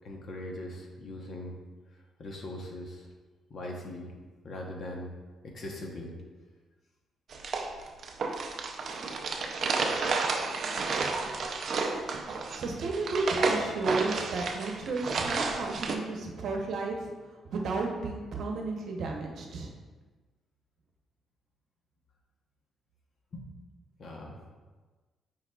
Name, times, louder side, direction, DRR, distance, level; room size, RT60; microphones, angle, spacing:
voice 1, 0.0-1.6 1.9-3.1 3.5-4.1 4.4-5.1 5.4-6.1 23.3-23.5 24.0-24.4, left 1 dB, 40° left, 0 dB, 1.0 m, -40 dB
sound 1, 7.3-15.9, right 4 dB, 45° right, 0.5 m, -31 dB
voice 2, 12.5-17.1 17.4-19.7, right 3 dB, 60° right, 1 dB, 0.9 m, -32 dB
8.6 x 4.8 x 2.3 m, 1.3 s
cardioid pair, 165°, 0 cm